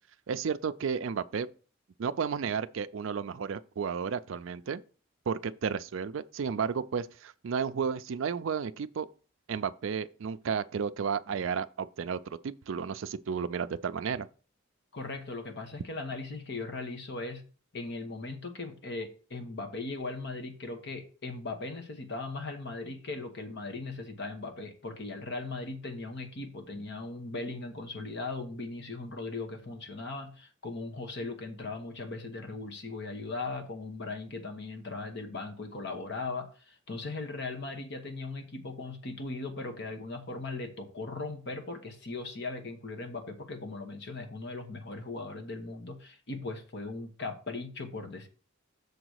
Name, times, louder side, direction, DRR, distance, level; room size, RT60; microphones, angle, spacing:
voice 1, 0.3-1.5 2.0-4.8 5.3-9.1 9.5-14.3, right 6 dB, 65° right, 0.4 m, -32 dB
voice 2, 14.9-17.4 17.7-48.3, left 3 dB, 55° left, 1.2 m, -38 dB
6.8 x 4.0 x 6.3 m
head